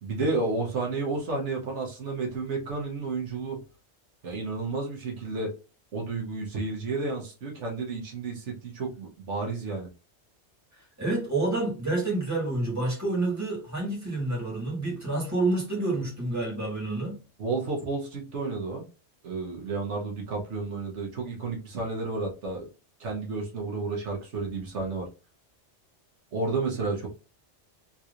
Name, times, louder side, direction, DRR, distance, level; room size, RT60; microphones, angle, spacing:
voice 1, 0.0-3.6 4.2-5.5 5.9-9.9 17.4-18.8 19.2-22.7 23.0-25.1 26.3-27.1, right 3 dB, 75° right, 1.3 m, -31 dB
voice 2, 10.8-17.2, right 2 dB, 15° right, 1.7 m, -28 dB
3.8 x 3.0 x 2.5 m
omnidirectional pair, 1.2 m